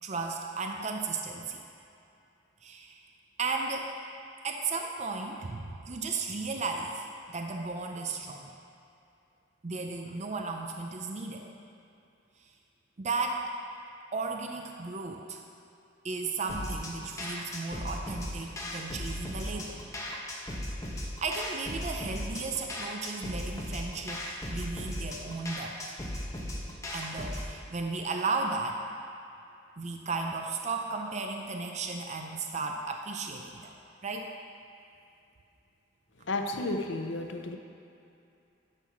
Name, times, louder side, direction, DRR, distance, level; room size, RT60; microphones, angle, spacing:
voice 1, 0.0-1.6 2.6-3.0 3.4-4.0 4.4-8.5 9.6-11.5 13.0-13.4 14.1-15.4 16.0-19.8 20.9-25.8 26.9-28.8 29.8-33.7 34.0-34.3, right 4 dB, 35° right, 2 dB, 0.5 m, -35 dB
sound 1, 16.5-27.5, left 1 dB, 15° left, 1.0 m, -37 dB
voice 2, 36.3-37.6, left 2 dB, 70° left, 5 dB, 0.7 m, -32 dB
11.5 x 4.6 x 5.9 m, 2.7 s
head